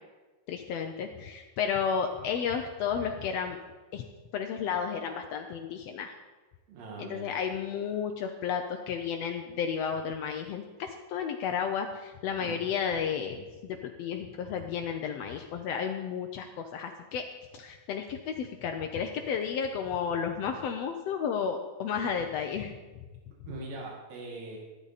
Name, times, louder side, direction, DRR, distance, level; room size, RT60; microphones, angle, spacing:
voice 1, 0.5-3.6 3.9-4.0 4.3-6.1 7.0-17.2 17.5-22.7, left 7 dB, 85° left, 4 dB, 1.4 m, -32 dB
voice 2, 6.7-7.3 12.4-12.6 23.5-24.6, right 2 dB, 85° right, -1 dB, 3.6 m, -41 dB
13.5 x 13.0 x 4.1 m, 1.2 s
omnidirectional pair, 3.9 m